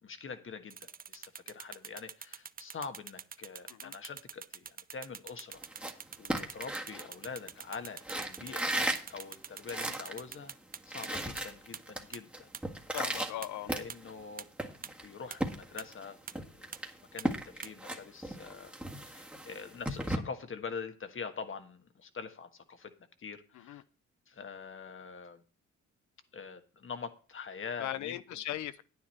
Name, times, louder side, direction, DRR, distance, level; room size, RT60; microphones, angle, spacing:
voice 1, 0.0-8.8 9.1-10.6 10.9-12.5 13.6-14.5 14.8-16.8 17.1-18.7 19.1-22.9 23.2-23.8 24.3-25.4 26.3-28.2, left 5 dB, 45° left, 8 dB, 1.5 m, -44 dB
sound 1, 0.7-11.1 11.4-11.5 11.7-11.8 12.1-12.2 12.5-12.6 13.0-13.1 13.4-13.5 13.9-14.0 14.4-14.5 14.8-14.9 15.3-15.4 15.8-15.9 16.3-16.4 16.7-16.8 17.2-17.3 17.6-17.7, right 7 dB, 30° right, 0.5 m, -44 dB
sound 2, 5.5-7.6 8.0-10.2 10.5-10.6 10.8-12.0 12.3-14.2 14.6-16.0 16.3-20.2, right 1 dB, 5° right, 1.7 m, -36 dB
voice 2, 12.9-13.7 23.5-23.8 27.8-28.8, left 12 dB, 75° left, 16 dB, 0.8 m, -38 dB
9.7 x 9.4 x 4.4 m, 0.37 s
cardioid pair, 90°, 30 cm